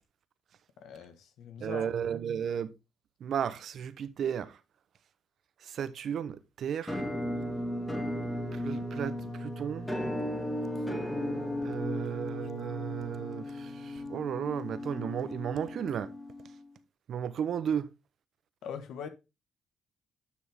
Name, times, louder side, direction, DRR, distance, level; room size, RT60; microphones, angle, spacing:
voice 1, 0.8-2.0 12.0-12.1 18.6-19.1, left 7 dB, 80° left, 1.4 m, -42 dB
voice 2, 1.6-2.7 3.2-4.5 5.7-7.0 8.5-9.1 9.4-9.9 11.6-16.1 17.1-17.9, right 8 dB, 65° right, 0.9 m, -34 dB
Musical instrument, 6.9-16.7, left 1 dB, 10° left, 2.2 m, -35 dB
9.9 x 6.2 x 3.5 m
cardioid pair, 90°, 0 cm